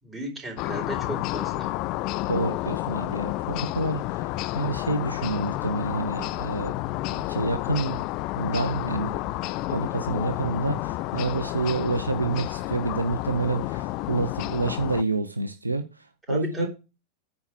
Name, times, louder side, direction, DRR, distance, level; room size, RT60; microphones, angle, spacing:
voice 1, 0.0-1.7 16.3-16.7, right 1 dB, 15° right, 4.4 m, -35 dB
sound 1, 0.6-15.0, left 18 dB, 40° left, 0.4 m, -30 dB
voice 2, 2.3-6.7 7.1-8.0 8.4-9.2 9.7-15.9 16.3-16.7, right 3 dB, 80° right, 0.8 m, -28 dB
9.6 x 4.4 x 6.2 m
figure-of-eight pair, 90°, 0 cm